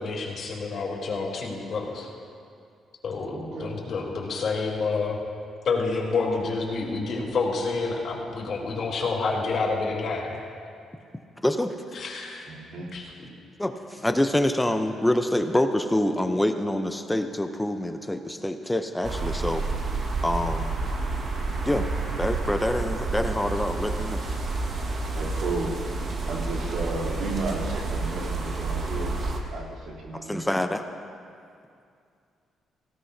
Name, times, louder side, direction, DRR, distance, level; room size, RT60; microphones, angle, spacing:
voice 1, 0.0-2.1 3.0-5.2 5.7-10.4 11.9-12.4 12.9-13.0, left 4 dB, 60° left, -3 dB, 3.6 m, -28 dB
voice 2, 3.3-3.7 12.5-12.9 25.1-25.7 26.3-29.2 29.5-30.4, right 3 dB, 70° right, -6 dB, 3.4 m, -33 dB
voice 3, 11.4-11.7 13.6-19.6 20.2-20.7 21.6-21.9 22.2-24.2 30.3-30.8, left 1 dB, 10° left, 7 dB, 0.7 m, -26 dB
sound 1, 19.0-29.4, right 3 dB, 50° right, 1.7 m, -29 dB
18.0 x 16.5 x 2.8 m, 2.4 s
cardioid pair, 90°, 0 cm